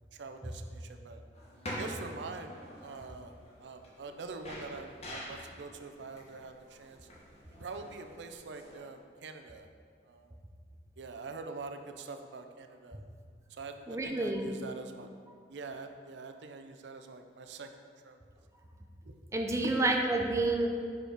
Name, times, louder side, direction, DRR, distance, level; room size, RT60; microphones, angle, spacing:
voice 1, 0.1-1.2 1.7-2.6 2.8-3.3 3.6-7.0 7.6-9.7 10.1-10.4 11.0-13.0 13.5-15.1 15.5-17.7 18.0-18.2 19.1-19.2 19.6-19.7, right 4 dB, 85° right, 6 dB, 0.5 m, -44 dB
sound 1, 1.3-8.8, equal, 35° left, 1.2 m, -46 dB
voice 2, 13.9-14.5 19.3-20.7, right 2 dB, 15° right, 2 dB, 0.5 m, -29 dB
6.3 x 5.1 x 5.0 m, 2.1 s
head